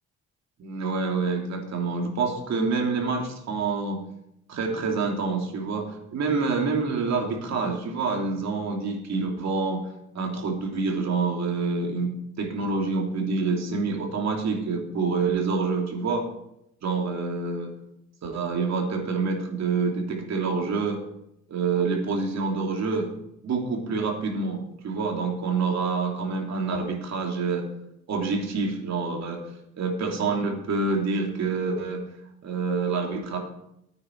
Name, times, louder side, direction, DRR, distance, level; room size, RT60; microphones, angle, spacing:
voice 1, 0.6-4.0 4.5-9.9 10.1-16.3 16.8-17.7 18.2-21.0 21.5-23.1 23.4-27.7 28.1-29.4 29.7-32.0 32.4-33.4, right 4 dB, 60° right, 1 dB, 3.0 m, -27 dB
13.5 x 9.3 x 4.7 m, 0.79 s
cardioid pair, 90°, 30 cm